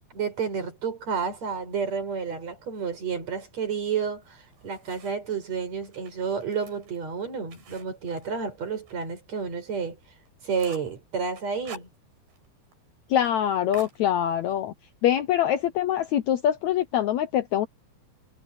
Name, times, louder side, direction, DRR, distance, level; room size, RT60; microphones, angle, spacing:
voice 1, 0.1-4.4 4.6-10.0 10.4-11.9, right 6 dB, 45° right, 6.9 m, -30 dB
sound 1, 4.2-5.4 5.8-9.1 9.4-9.5 9.9-10.0 10.3-11.0 11.4-12.5 12.7-12.8 13.1-13.3 13.7-14.6, right 5 dB, 85° right, 6.4 m, -48 dB
voice 2, 13.1-14.7 15.0-17.7, left 10 dB, 90° left, 1.6 m, -24 dB
omnidirectional pair, 4.3 m